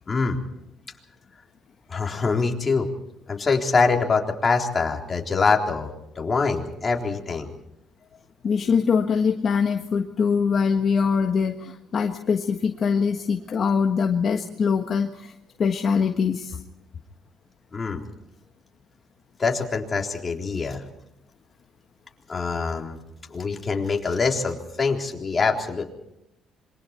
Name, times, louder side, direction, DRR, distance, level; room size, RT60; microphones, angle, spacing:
voice 1, 0.1-0.4 1.9-2.9 3.3-5.9 6.2-7.5 17.7-18.0 19.4-20.8 22.3-23.0 23.3-25.8, left 4 dB, 30° left, 1 dB, 3.8 m, -24 dB
voice 2, 8.4-15.3 15.6-16.6, left 6 dB, 45° left, 4 dB, 1.5 m, -23 dB
26.5 x 23.5 x 4.4 m, 0.82 s
cardioid pair, 110°, 0 cm